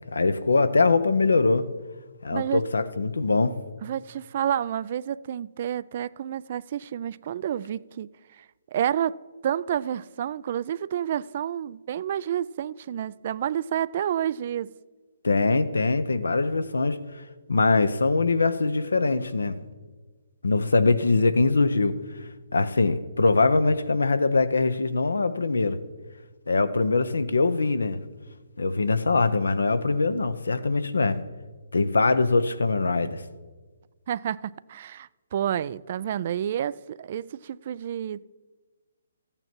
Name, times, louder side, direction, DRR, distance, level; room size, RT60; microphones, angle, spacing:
voice 1, 0.1-1.7 2.2-3.6 15.2-17.0 17.5-19.6 20.4-22.0 22.5-25.8 26.5-28.0 28.6-31.2 31.7-33.2, left 3 dB, 80° left, 0.8 m, -22 dB
voice 2, 2.3-2.6 3.8-8.1 8.4-8.5 8.7-9.2 9.4-14.7 34.1-38.2, right 10 dB, 45° right, 0.3 m, -29 dB
14.0 x 8.8 x 4.5 m
figure-of-eight pair, 140°, 0 cm